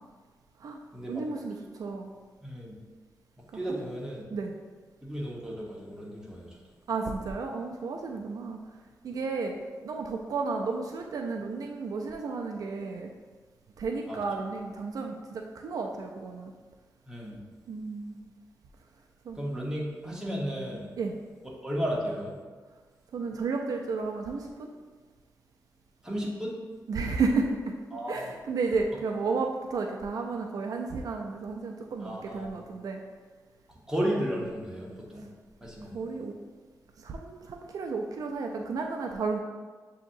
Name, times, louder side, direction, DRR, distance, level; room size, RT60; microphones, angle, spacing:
voice 1, 1.1-2.1 3.7-3.9 4.3-4.5 6.9-8.6 9.0-13.1 13.8-16.5 17.7-18.3 19.3-19.4 21.0-21.2 23.1-24.7 26.9-27.7 28.1-33.0 35.9-36.3 37.0-39.4, right 4 dB, 65° right, 2 dB, 0.4 m, -32 dB
voice 2, 2.4-2.7 3.5-4.2 5.0-6.5 14.1-14.2 17.1-17.4 19.4-20.9 21.6-22.4 26.0-26.5 27.9-28.3 32.0-32.5 33.9-35.2 35.6-36.0, equal, 10° right, -4 dB, 1.1 m, -33 dB
7.0 x 2.8 x 2.6 m, 1.4 s
cardioid pair, 90°, 7 cm